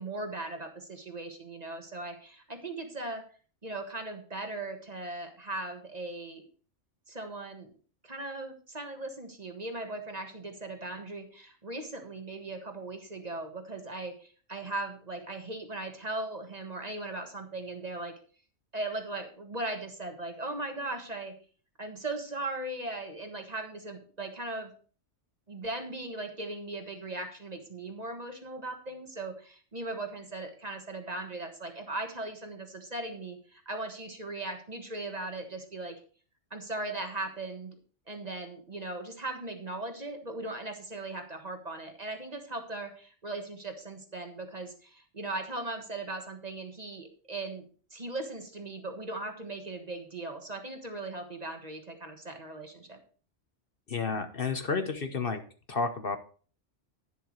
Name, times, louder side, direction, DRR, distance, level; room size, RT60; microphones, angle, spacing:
voice 1, 0.0-3.2 3.6-6.4 7.1-7.7 8.0-18.1 18.7-21.3 21.8-24.7 25.5-35.9 36.5-37.7 38.1-53.0, right 2 dB, 35° right, 5 dB, 1.5 m, -38 dB
voice 2, 53.9-55.4 55.7-56.2, left 4 dB, 50° left, 8 dB, 1.1 m, -31 dB
11.0 x 10.0 x 3.1 m, 0.40 s
omnidirectional pair, 1.3 m